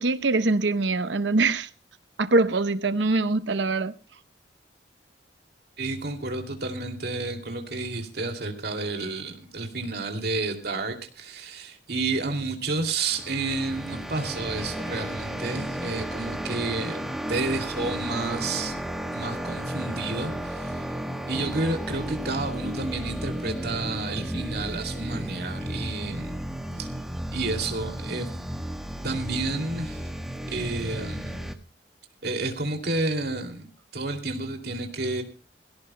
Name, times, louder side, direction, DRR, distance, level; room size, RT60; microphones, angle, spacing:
voice 1, 0.0-1.7 2.2-3.9, right 3 dB, 85° right, 0.8 m, -23 dB
voice 2, 5.8-18.7 19.1-20.8 21.3-26.4 26.8-26.9 27.3-28.3 29.0-30.1 30.5-31.5 32.2-33.7 33.9-35.2, right 3 dB, 65° right, 2.6 m, -30 dB
sound 1, 13.0-31.6, equal, ahead, 1.2 m, -33 dB
22.0 x 17.0 x 2.2 m
head